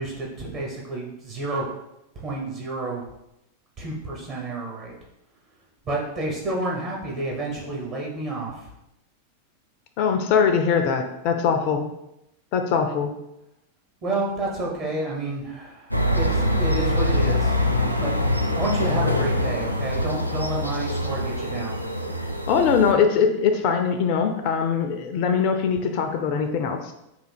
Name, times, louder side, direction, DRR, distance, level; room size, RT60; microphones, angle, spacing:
voice 1, 0.0-1.7 2.1-3.0 3.8-4.9 5.9-8.7 14.0-17.5 18.0-21.8, right 2 dB, 35° right, -3 dB, 1.0 m, -30 dB
voice 2, 10.0-11.9 12.5-13.1 22.5-26.9, left 6 dB, 45° left, 5 dB, 0.4 m, -22 dB
sound 1, 15.9-22.9, left 1 dB, 90° right, 0.4 m, -24 dB
3.7 x 2.7 x 4.2 m, 0.85 s
figure-of-eight pair, 90°, 0 cm